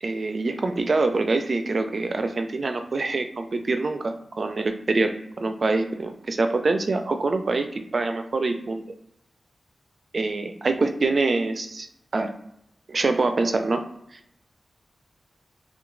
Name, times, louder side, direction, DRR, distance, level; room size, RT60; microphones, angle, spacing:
voice 1, 0.0-8.8 10.1-11.9 12.1-12.3 12.9-13.9, right 3 dB, 55° right, 7 dB, 0.3 m, -25 dB
2.8 x 2.3 x 2.5 m, 0.75 s
cardioid pair, 55°, 0 cm